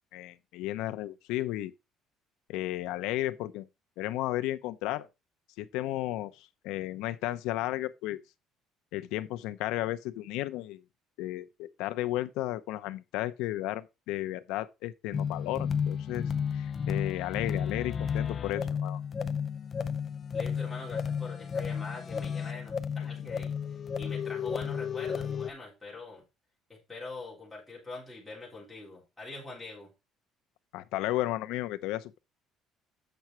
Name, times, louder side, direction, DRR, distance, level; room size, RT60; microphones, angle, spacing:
voice 1, 0.1-1.7 2.5-3.7 4.0-5.1 5.6-8.2 8.9-10.8 11.2-19.0 23.0-23.1 30.7-32.2, left 15 dB, 90° left, 0.7 m, -34 dB
sound 1, 15.1-25.5, left 7 dB, 25° left, 0.4 m, -33 dB
voice 2, 20.3-26.3 26.7-29.9, left 3 dB, 5° left, 3.5 m, -44 dB
8.0 x 5.9 x 4.4 m
cardioid pair, 175°, 0 cm